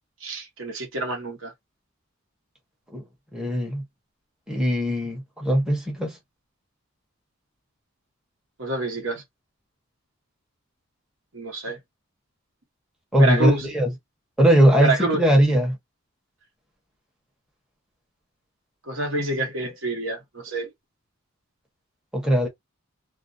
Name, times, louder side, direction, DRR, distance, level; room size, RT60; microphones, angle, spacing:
voice 1, 0.2-1.5 8.6-9.2 11.3-11.8 13.2-13.7 14.8-15.2 18.8-20.7, right 2 dB, 70° right, 1.0 m, -27 dB
voice 2, 3.3-3.8 4.5-6.2 13.1-13.9 14.4-15.8 22.1-22.5, equal, 5° right, 0.8 m, -20 dB
2.5 x 2.0 x 2.5 m
head